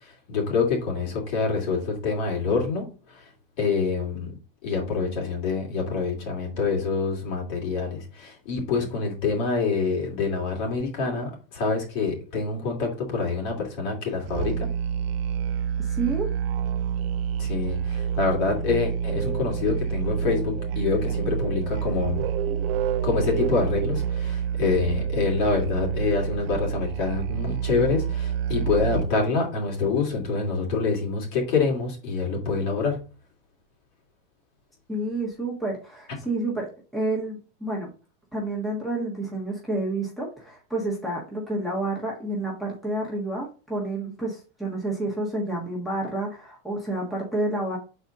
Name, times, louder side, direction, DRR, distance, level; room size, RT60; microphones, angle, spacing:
voice 1, 0.3-2.9 3.6-4.3 4.6-14.5 17.4-22.2 23.0-33.0, left 4 dB, 55° left, -1 dB, 2.7 m, -26 dB
Musical instrument, 14.3-29.3, right 8 dB, 85° right, 0.5 m, -28 dB
voice 2, 15.8-16.3 34.9-37.9 38.3-47.8, right 2 dB, ahead, -4 dB, 1.4 m, -29 dB
6.9 x 4.3 x 3.7 m, 0.34 s
supercardioid pair, 160°, 29 cm